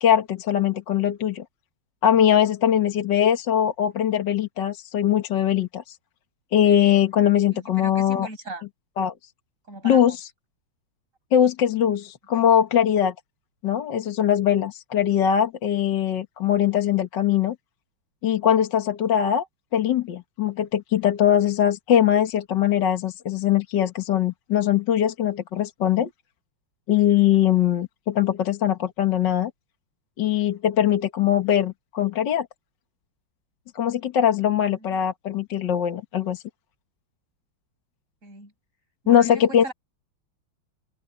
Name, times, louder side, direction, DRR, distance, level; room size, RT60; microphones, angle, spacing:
voice 1, 0.0-1.4 2.0-6.0 6.5-8.3 9.0-9.1 9.8-10.3 11.3-13.1 13.6-17.6 18.2-19.5 19.7-26.1 26.9-29.5 30.2-32.5 33.8-36.4 39.1-39.7, left 10 dB, 60° left, 2.0 m, -21 dB
voice 2, 7.5-8.6 9.7-10.2 12.3-12.5 34.7-34.9 38.2-38.5 39.0-39.7, right 2 dB, 35° right, 7.2 m, -39 dB
omnidirectional pair, 2.3 m